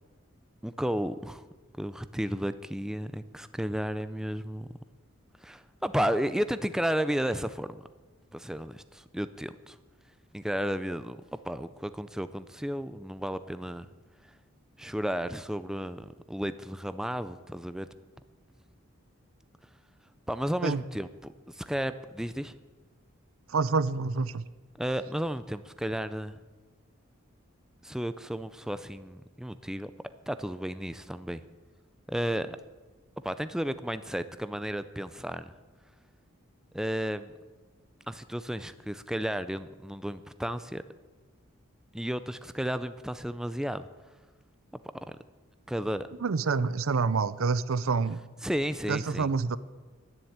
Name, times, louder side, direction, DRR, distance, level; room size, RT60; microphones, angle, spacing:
voice 1, 0.6-1.4 1.8-4.8 5.4-7.8 8.3-9.8 10.3-13.9 14.8-17.9 20.3-22.5 24.8-26.4 27.8-29.9 30.3-31.4 32.1-32.6 33.2-35.5 36.7-37.3 38.1-40.8 41.9-43.9 45.1-45.2 45.7-46.1 48.4-49.3, equal, 5° right, 12 dB, 0.4 m, -33 dB
voice 2, 23.5-24.4 46.2-48.2 48.9-49.6, right 4 dB, 80° right, 17 dB, 0.6 m, -27 dB
11.0 x 9.9 x 8.7 m, 1.3 s
head